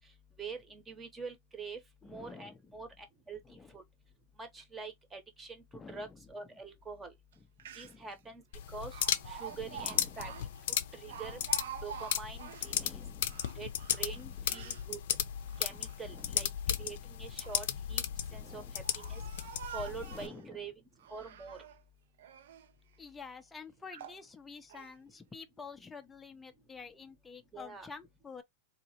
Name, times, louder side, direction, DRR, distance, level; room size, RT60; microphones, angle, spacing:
voice 1, 0.4-3.8 4.4-5.6 5.9-7.1 7.8-8.4 8.7-9.0 9.3-10.3 10.9-11.4 11.8-13.0 13.6-13.7 14.0-15.0 15.6-16.5 16.8-18.0 18.3-18.6 18.9-19.2 19.7-20.7 21.1-21.6 27.5-27.9, right 4 dB, 10° right, 0.9 m, -45 dB
voice 2, 2.0-2.7 3.4-3.8 5.7-6.3 7.4-8.1 9.5-10.4 11.1-11.5 12.6-13.5 14.2-14.5 15.7-15.8 16.0-17.0 18.3-18.7 19.8-20.7 23.0-28.4, left 5 dB, 10° left, 0.5 m, -50 dB
Speech, 7.3-7.4 7.6-8.1 8.9-12.8 13.2-14.9 15.4-16.2 17.1-17.7 18.4-20.4 21.0-21.8 22.2-22.7 23.3-23.4 23.9-24.2 24.7-24.9, right 9 dB, 75° right, 0.6 m, -48 dB
sound 1, 8.5-20.3, left 10 dB, 65° left, 0.5 m, -36 dB
3.8 x 2.8 x 2.9 m
supercardioid pair, 170°, 0 cm